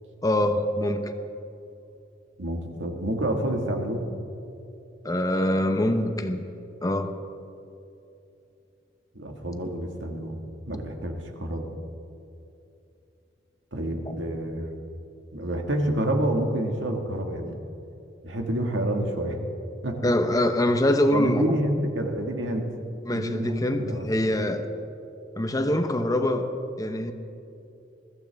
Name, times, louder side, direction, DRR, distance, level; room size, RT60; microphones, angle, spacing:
voice 1, 0.2-1.1 5.0-6.4 6.8-7.1 14.1-14.2 20.0-21.5 23.0-24.6 25.4-26.5 26.8-27.1, left 1 dB, 20° left, 7 dB, 0.8 m, -24 dB
voice 2, 2.4-4.1 9.2-11.7 13.7-14.7 15.3-17.6 18.2-19.4 19.8-20.1 21.1-22.7 23.1-24.1, right 1 dB, 85° right, 3 dB, 1.8 m, -28 dB
21.5 x 14.5 x 3.5 m, 2.7 s
head